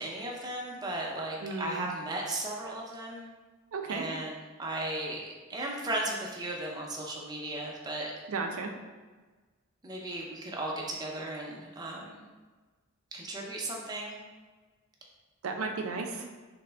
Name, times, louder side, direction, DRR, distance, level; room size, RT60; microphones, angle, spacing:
voice 1, 0.0-3.3 3.9-5.2 5.5-8.1 9.8-12.2 13.1-14.2, right 1 dB, 20° right, -2 dB, 0.5 m, -36 dB
voice 2, 1.4-1.9 3.7-4.0 8.3-8.7 15.4-16.3, right 4 dB, 85° right, 4 dB, 0.4 m, -34 dB
3.3 x 2.1 x 3.3 m, 1.3 s
head